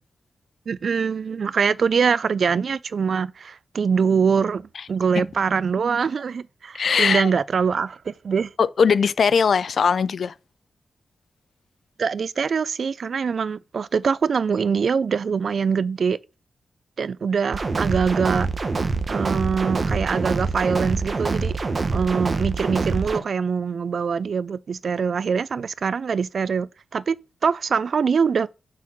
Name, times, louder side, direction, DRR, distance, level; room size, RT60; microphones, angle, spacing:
voice 1, 0.7-8.5 12.0-16.2 17.0-18.5 19.1-21.6 21.9-28.5, right 6 dB, 60° right, 0.3 m, -23 dB
voice 2, 6.7-7.3 8.6-10.3, left 6 dB, 65° left, 0.3 m, -20 dB
sound 1, 17.5-23.2, right 3 dB, 40° right, 0.9 m, -25 dB
5.8 x 4.4 x 6.0 m
wide cardioid pair, 105°, 0 cm